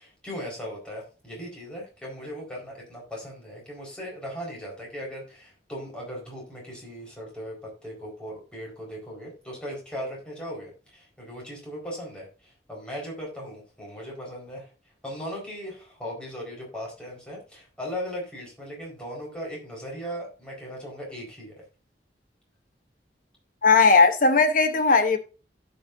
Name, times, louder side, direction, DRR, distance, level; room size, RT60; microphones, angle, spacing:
voice 1, 0.0-14.7 15.0-21.6, equal, 5° left, 4.5 m, -38 dB
voice 2, 23.6-25.2, left 4 dB, 50° left, 0.9 m, -18 dB
16.5 x 5.6 x 2.6 m
head